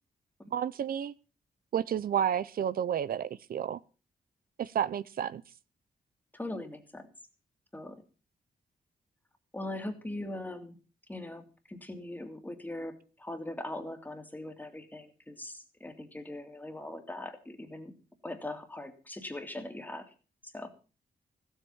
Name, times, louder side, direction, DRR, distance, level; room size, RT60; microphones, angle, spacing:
voice 1, 0.5-1.1 1.7-3.8 4.6-5.4, right 9 dB, 70° right, 17 dB, 0.6 m, -31 dB
voice 2, 6.3-7.1 7.7-8.0 9.5-10.8 11.1-17.9 18.2-20.1 20.5-20.7, left 1 dB, 10° left, 6 dB, 2.4 m, -41 dB
15.5 x 8.1 x 7.2 m, 0.36 s
wide cardioid pair, 125°, 16 cm